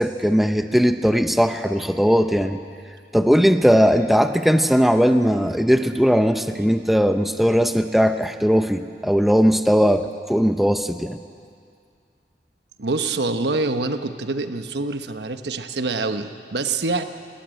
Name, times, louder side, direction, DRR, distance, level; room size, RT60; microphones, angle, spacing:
voice 1, 0.0-2.6 3.1-11.2, equal, ahead, 8 dB, 0.6 m, -18 dB
voice 2, 12.8-17.0, right 3 dB, 75° right, 8 dB, 1.1 m, -25 dB
19.0 x 19.0 x 9.1 m, 2.3 s
head